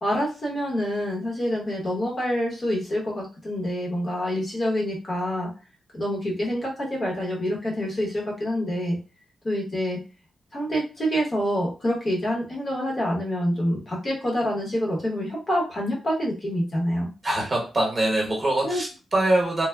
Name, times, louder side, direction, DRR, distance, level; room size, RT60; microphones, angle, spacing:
voice 1, 0.0-5.5 5.9-9.0 9.4-10.0 10.5-17.1 18.6-18.8, equal, 30° left, -2 dB, 0.8 m, -27 dB
voice 2, 17.2-19.7, right 1 dB, 25° right, -3 dB, 0.9 m, -23 dB
3.3 x 2.0 x 2.2 m, 0.33 s
wide cardioid pair, 160°, 0 cm